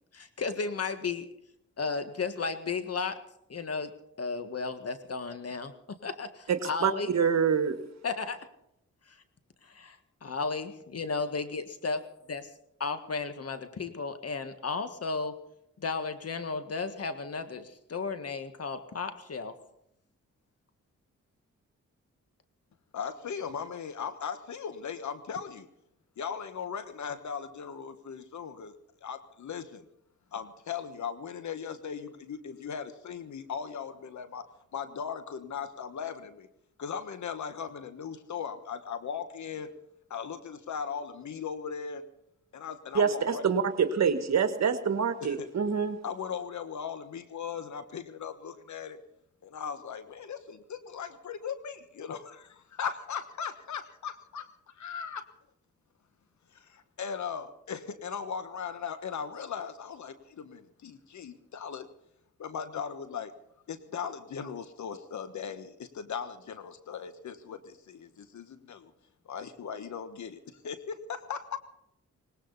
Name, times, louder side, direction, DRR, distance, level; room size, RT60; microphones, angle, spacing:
voice 1, 0.1-1.3 1.8-3.2 3.5-3.9 4.2-7.1 8.0-8.4 9.1-9.2 9.6-12.0 12.3-12.4 12.8-15.3 15.8-19.5, left 4 dB, 55° left, 9 dB, 1.7 m, -34 dB
voice 2, 6.5-7.8 42.9-46.0, right 6 dB, 65° right, 10 dB, 1.5 m, -26 dB
voice 3, 22.9-25.7 26.2-28.8 29.0-29.9 30.3-34.4 34.7-36.5 36.8-39.7 40.1-42.0 42.5-43.4 45.2-45.5 46.0-49.0 49.4-55.2 56.5-61.9 62.4-63.3 63.7-68.9 69.2-71.6, left 7 dB, 70° left, 11 dB, 1.3 m, -38 dB
19.0 x 18.5 x 4.1 m, 0.77 s
cardioid pair, 55°, 30 cm